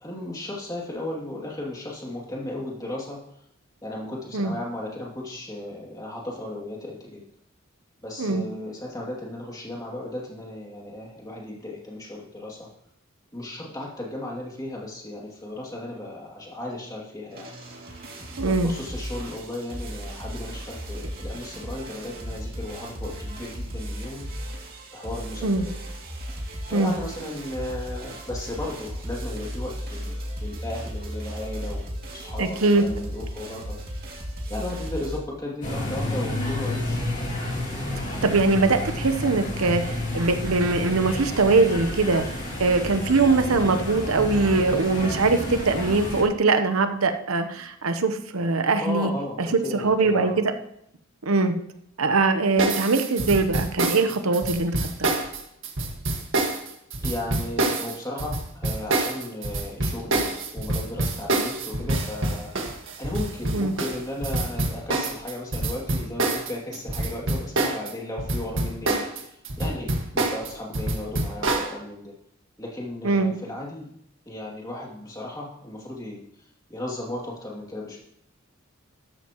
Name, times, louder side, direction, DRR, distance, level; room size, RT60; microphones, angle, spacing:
voice 1, 0.0-3.2 3.8-7.2 8.0-12.7 13.3-17.5 18.4-24.3 24.9-25.7 26.7-33.8 34.5-37.0 48.8-50.4 57.0-62.5 63.0-72.1 72.6-73.9 74.3-76.2 76.7-78.0, left 1 dB, 15° left, -3 dB, 2.6 m, -35 dB
sound 1, 17.3-35.2, equal, 45° right, 2.5 m, -35 dB
voice 2, 18.4-18.7 25.4-25.7 26.7-26.9 32.4-32.8 38.2-42.2 42.6-49.1 49.4-49.5 49.7-50.3 51.2-51.6 52.0-55.1 63.5-63.7 73.0-73.3, right 3 dB, 90° right, 8 dB, 0.9 m, -22 dB
sound 2, 35.6-46.2, left 1 dB, 35° left, 2.5 m, -30 dB
sound 3, 52.6-67.9 68.2-71.7, right 2 dB, 65° right, 1.8 m, -26 dB
13.0 x 12.0 x 3.1 m, 0.74 s
head